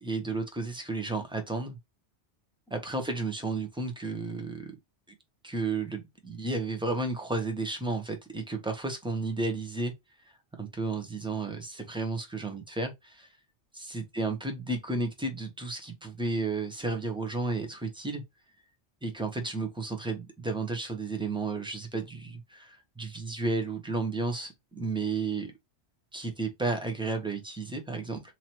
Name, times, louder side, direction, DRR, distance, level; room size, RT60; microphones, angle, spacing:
voice 1, 0.0-1.8 2.7-4.7 5.4-9.9 10.6-13.3 13.7-18.2 19.0-25.5 26.1-28.2, right 3 dB, 5° right, 0.7 m, -32 dB
2.9 x 2.8 x 4.4 m
omnidirectional pair, 1.2 m